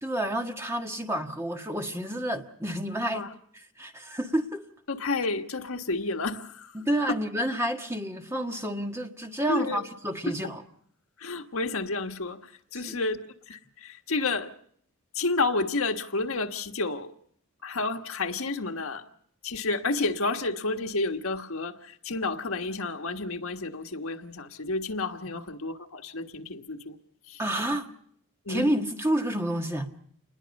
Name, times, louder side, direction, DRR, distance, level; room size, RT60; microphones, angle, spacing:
voice 1, 0.0-3.2 3.8-4.6 6.7-10.6 12.7-13.0 25.3-25.4 27.4-27.9 28.5-29.9, right 1 dB, 10° right, 1.5 m, -29 dB
voice 2, 4.9-6.8 7.1-7.2 9.5-9.8 10.3-10.4 11.2-14.5 15.1-17.1 17.6-19.1 19.4-27.0 27.3-27.4 28.4-28.7, left 3 dB, 75° left, 1.5 m, -30 dB
28.0 x 21.0 x 5.3 m
head